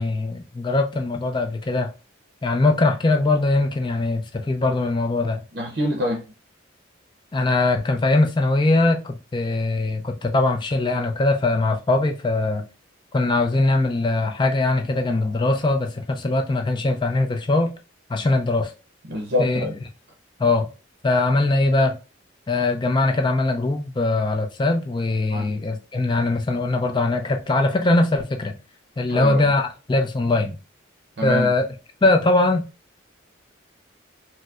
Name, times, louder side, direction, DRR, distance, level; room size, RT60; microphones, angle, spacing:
voice 1, 0.0-1.9 2.4-5.4 7.3-12.6 13.1-17.7 18.1-18.7 19.4-19.6 20.4-20.7 21.0-22.0 22.5-28.5 29.0-30.6 31.2-31.7 32.0-32.6, left 2 dB, 25° left, 0.4 m, -21 dB
voice 2, 5.5-6.2 19.1-19.8 25.3-25.5 29.0-29.4 31.2-31.5, left 1 dB, 55° right, 0.7 m, -25 dB
4.5 x 2.1 x 2.4 m
head